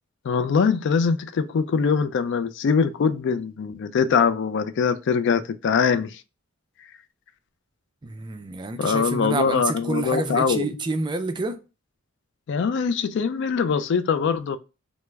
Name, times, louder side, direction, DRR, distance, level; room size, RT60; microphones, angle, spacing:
voice 1, 0.2-6.2 8.8-10.8 12.5-14.6, left 5 dB, 55° left, 0.3 m, -23 dB
voice 2, 8.0-11.6, right 3 dB, 20° right, 0.3 m, -28 dB
3.4 x 2.0 x 3.1 m
head